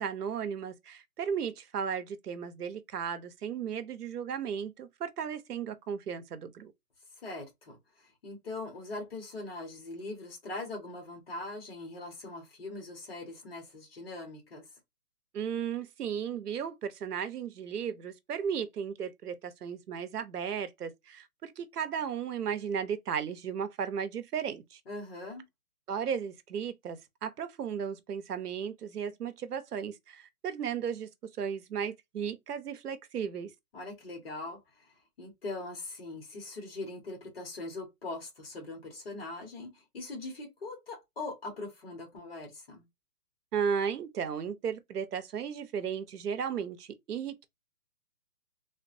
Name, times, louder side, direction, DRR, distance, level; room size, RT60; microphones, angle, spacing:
voice 1, 0.0-6.7 15.3-24.8 25.9-33.5 43.5-47.5, right 7 dB, 85° right, 0.8 m, -35 dB
voice 2, 7.2-14.6 24.9-25.4 33.7-42.8, left 2 dB, 40° left, 1.3 m, -41 dB
3.5 x 2.2 x 2.6 m
hypercardioid pair, 170°, 45 cm